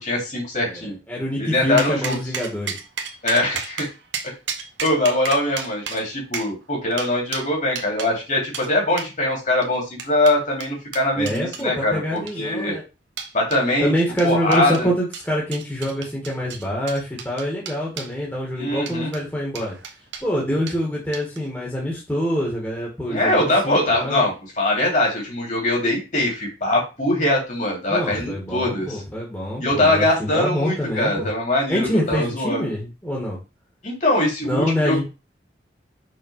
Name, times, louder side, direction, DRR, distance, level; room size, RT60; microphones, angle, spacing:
voice 1, 0.0-1.0 1.4-2.2 3.2-3.9 4.8-12.7 13.3-13.9 14.2-14.9 18.6-19.1 23.1-29.0 29.6-32.7 33.8-35.0, left 1 dB, 45° left, -1 dB, 3.2 m, -22 dB
voice 2, 0.7-2.7 11.2-12.8 13.8-19.8 20.2-24.3 27.9-31.3 31.7-33.4 34.4-35.0, equal, 10° left, -3 dB, 2.1 m, -25 dB
sound 1, 1.8-8.1 8.5-8.7 9.0-9.1 9.6-11.7 12.2-12.6 13.2-13.6 14.2-14.9 15.1-18.1 18.8-19.2 19.6-20.3 20.7-20.8 21.1-21.5, right 6 dB, 90° right, 1.2 m, -33 dB
6.3 x 4.4 x 5.7 m, 0.29 s
head